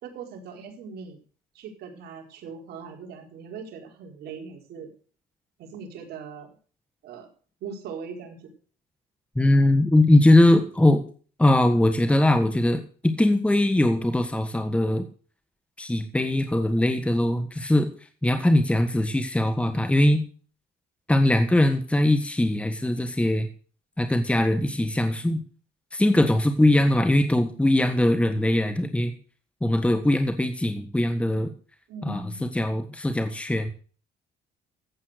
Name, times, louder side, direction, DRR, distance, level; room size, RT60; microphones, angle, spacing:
voice 1, 0.0-1.2 1.5-4.9 5.6-6.5 7.0-7.3 7.6-8.5 31.9-32.7, right 5 dB, 70° right, 2 dB, 4.6 m, -40 dB
voice 2, 9.3-11.0 11.4-15.1 15.8-17.9 18.2-20.2 21.1-23.5 24.0-25.4 25.9-29.1 29.6-31.5 32.0-33.7, left 1 dB, 5° left, 8 dB, 1.5 m, -21 dB
14.5 x 8.8 x 6.6 m, 0.41 s
cardioid pair, 110°, 17 cm